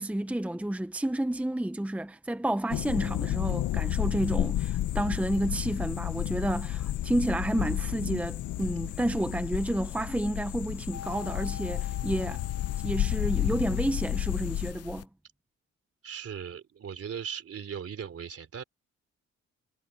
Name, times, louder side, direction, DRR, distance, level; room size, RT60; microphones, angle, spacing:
voice 1, 0.0-12.4 12.8-15.1, right 1 dB, 5° right, 1.0 m, -30 dB
sound 1, 2.7-14.7, left 13 dB, 75° left, 1.0 m, -31 dB
sound 2, 10.9-15.1, left 10 dB, 55° left, 0.6 m, -44 dB
voice 2, 16.0-18.6, right 7 dB, 50° right, 3.4 m, -38 dB
cardioid pair, 90°, 30 cm